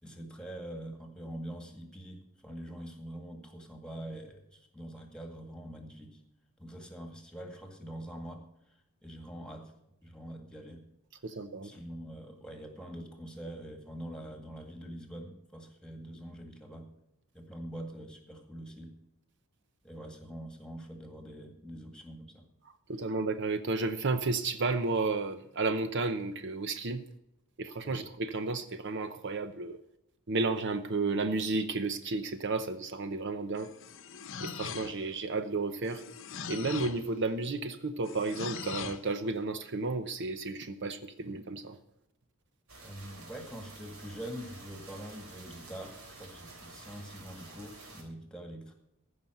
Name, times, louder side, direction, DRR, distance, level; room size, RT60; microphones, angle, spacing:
voice 1, 0.0-6.2 6.6-8.8 9.0-9.7 10.0-10.8 11.6-16.9 17.3-18.9 19.8-22.4 42.8-48.7, right 1 dB, 5° left, 4 dB, 2.0 m, -44 dB
voice 2, 11.2-11.7 22.9-27.0 27.6-29.8 30.3-33.7 34.4-36.0 36.5-41.8, right 3 dB, 55° right, 10 dB, 0.8 m, -32 dB
sound 1, 33.6-35.2 35.8-37.1 38.0-39.1, left 6 dB, 60° left, 0.9 m, -41 dB
sound 2, 42.7-48.0, right 2 dB, 70° right, 3.6 m, -50 dB
15.0 x 5.8 x 7.8 m, 0.83 s
head